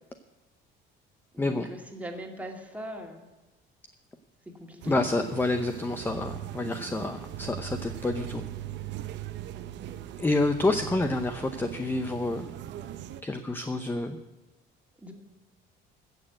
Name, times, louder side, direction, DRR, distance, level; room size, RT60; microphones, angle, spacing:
voice 1, 1.3-3.2 4.6-5.0 15.0-15.1, right 1 dB, 5° right, 1 dB, 2.2 m, -40 dB
sound 1, 4.8-13.2, right 12 dB, 65° right, 0.8 m, -40 dB
voice 2, 4.9-8.4 10.2-12.5 13.2-14.2, left 2 dB, 10° left, 7 dB, 0.7 m, -28 dB
15.0 x 6.7 x 7.8 m, 1.2 s
cardioid pair, 125°, 20 cm